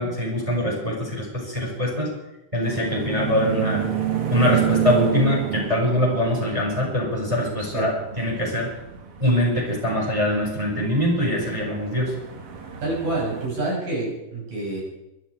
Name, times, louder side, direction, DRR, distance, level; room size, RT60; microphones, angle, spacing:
voice 1, 0.0-2.1 2.5-3.9 4.3-8.7 9.2-12.1, equal, 10° right, -1 dB, 5.8 m, -23 dB
sound 1, 2.6-13.5, right 9 dB, 50° right, 2.1 m, -30 dB
voice 2, 7.6-7.9 12.8-14.8, right 2 dB, 80° right, -3 dB, 8.4 m, -27 dB
24.5 x 12.0 x 4.8 m, 0.92 s
omnidirectional pair, 3.9 m